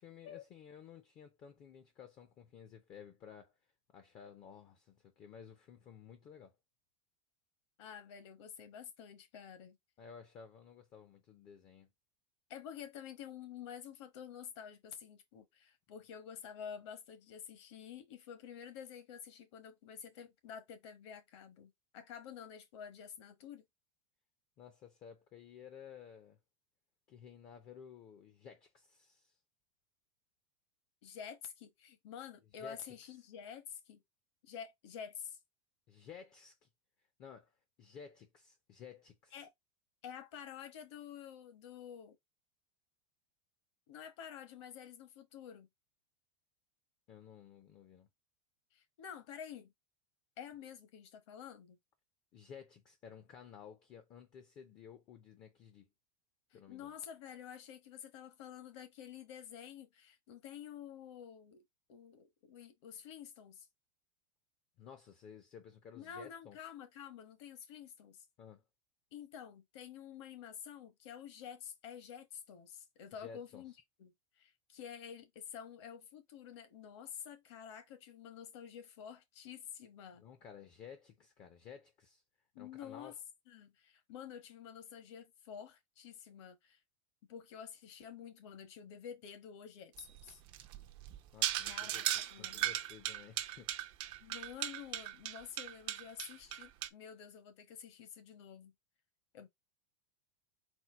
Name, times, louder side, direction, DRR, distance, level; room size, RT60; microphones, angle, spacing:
voice 1, 0.0-3.6 3.9-6.6 10.0-11.9 24.6-26.4 27.1-29.4 32.6-32.9 35.9-36.7 37.2-39.4 47.1-48.1 52.3-55.9 56.5-56.9 64.8-66.6 68.4-68.6 73.2-73.7 80.2-82.2 82.6-83.1 91.3-92.1 92.4-93.7, left 7 dB, 25° left, 0.5 m, -54 dB
voice 2, 7.8-9.8 12.5-23.6 31.0-34.0 34.4-35.4 39.3-39.5 40.0-42.2 43.9-45.7 48.7-49.7 50.4-51.8 56.5-61.6 61.9-63.7 65.9-68.2 69.1-73.7 74.0-80.2 82.5-83.1 83.5-86.8 87.3-90.4 91.7-92.6 94.2-98.7 99.3-99.5, left 8 dB, 60° left, 1.2 m, -49 dB
sound 1, 90.0-96.9, right 13 dB, 30° right, 0.4 m, -38 dB
4.3 x 2.1 x 4.3 m
supercardioid pair, 160°, 17 cm